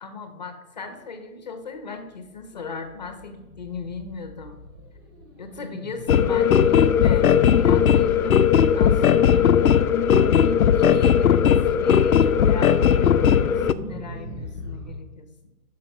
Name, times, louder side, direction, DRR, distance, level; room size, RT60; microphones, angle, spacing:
voice 1, 0.0-4.6 5.4-9.5 10.1-15.5, left 5 dB, 30° left, 7 dB, 0.9 m, -37 dB
sound 1, 1.8-14.9, left 1 dB, 15° right, 1.7 m, -40 dB
sound 2, 6.1-13.7, left 8 dB, 65° left, 0.6 m, -18 dB
9.1 x 6.3 x 5.6 m, 1.1 s
hypercardioid pair, 170°, 47 cm